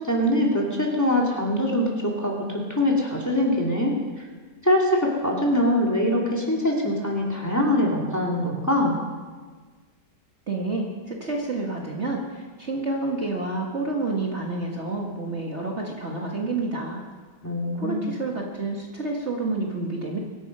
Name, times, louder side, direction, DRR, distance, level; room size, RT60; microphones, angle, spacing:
voice 1, 0.0-4.3 4.6-9.0 17.4-18.1, left 1 dB, 10° left, -3 dB, 2.8 m, -23 dB
voice 2, 10.5-17.0 17.7-20.2, right 2 dB, 40° right, -1 dB, 1.8 m, -29 dB
24.5 x 10.0 x 5.5 m, 1.4 s
omnidirectional pair, 1.9 m